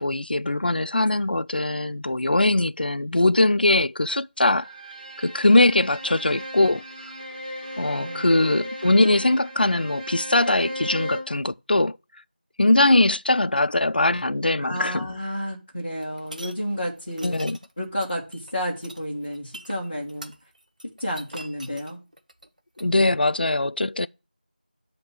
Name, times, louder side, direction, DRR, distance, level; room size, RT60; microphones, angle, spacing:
voice 1, 0.0-4.7 5.2-6.8 7.8-12.0 12.6-15.1 17.2-17.6 22.8-24.1, left 2 dB, 70° left, 0.3 m, -21 dB
Bowed string instrument, 4.6-11.4, equal, 20° right, 1.5 m, -36 dB
voice 2, 8.0-8.5 14.6-17.4 17.8-20.3 21.0-22.0, equal, 15° left, 0.6 m, -31 dB
sound 1, 16.0-16.5 17.1-22.9, right 1 dB, 50° right, 0.8 m, -42 dB
8.3 x 2.8 x 6.0 m
figure-of-eight pair, 175°, 5 cm